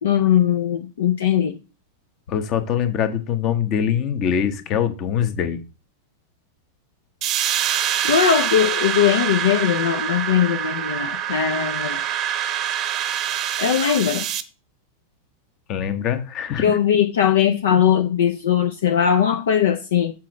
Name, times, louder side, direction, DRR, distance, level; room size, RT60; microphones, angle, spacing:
voice 1, 0.0-1.6 8.1-12.0 13.6-14.3 16.6-20.1, left 9 dB, 60° left, 0.6 m, -19 dB
voice 2, 2.3-5.6 15.7-16.8, left 8 dB, 35° left, 1.1 m, -23 dB
sound 1, 7.2-14.4, right 10 dB, 35° right, 0.8 m, -25 dB
7.5 x 4.1 x 4.9 m
figure-of-eight pair, 90°, 0 cm